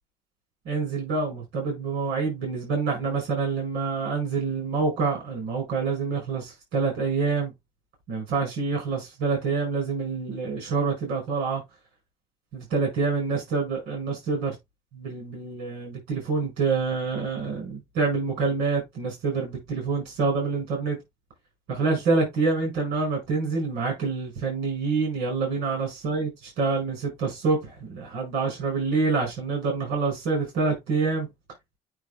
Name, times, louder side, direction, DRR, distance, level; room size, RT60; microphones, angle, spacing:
voice 1, 0.6-7.5 8.1-11.6 12.5-14.5 14.9-21.0 21.7-26.3 26.6-31.3, right 4 dB, 90° right, 5.0 m, -27 dB
9.1 x 3.5 x 3.3 m
cardioid pair, 110°, 17 cm